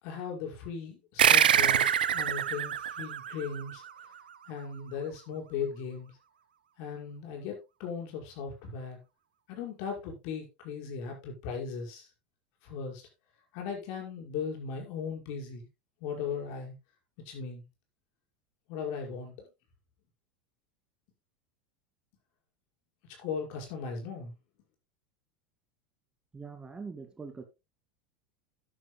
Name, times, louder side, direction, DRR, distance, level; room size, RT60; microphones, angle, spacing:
voice 1, 0.0-4.1 4.5-6.1 6.8-9.0 9.5-12.1 12.6-13.0 13.5-15.7 16.0-16.8 17.2-17.6 18.7-19.5 23.2-24.3, left 6 dB, 60° left, 5.6 m, -38 dB
sound 1, 1.2-4.2, right 9 dB, 80° right, 0.9 m, -25 dB
voice 2, 26.3-27.4, right 4 dB, 15° right, 2.0 m, -43 dB
13.0 x 11.0 x 2.2 m
hypercardioid pair, 85°, 5 cm